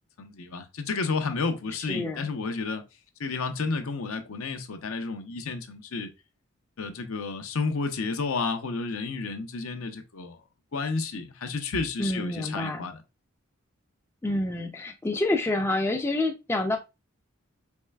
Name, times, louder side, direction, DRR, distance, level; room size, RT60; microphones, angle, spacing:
voice 1, 0.2-2.8 3.2-6.1 6.8-10.4 10.7-13.0, left 4 dB, 75° left, 0.6 m, -31 dB
voice 2, 1.9-2.3 12.0-12.9 14.2-16.8, left 2 dB, 10° left, 0.3 m, -28 dB
4.5 x 3.1 x 2.2 m
head